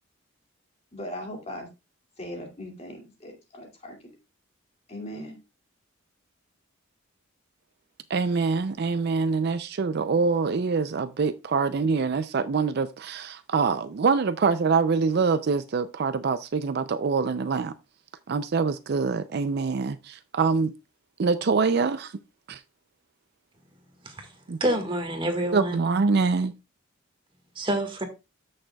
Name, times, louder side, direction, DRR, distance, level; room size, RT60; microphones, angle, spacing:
voice 1, 0.9-1.7 2.2-4.0 4.9-5.4, left 1 dB, 30° left, 2.4 m, -39 dB
voice 2, 8.1-17.7 18.3-20.7 21.2-22.1 22.5-22.6 24.5-24.6 25.5-26.5, right 4 dB, 50° right, 0.4 m, -25 dB
voice 3, 24.6-25.7 27.5-28.0, right 1 dB, 25° right, 1.7 m, -27 dB
14.0 x 6.5 x 2.3 m
head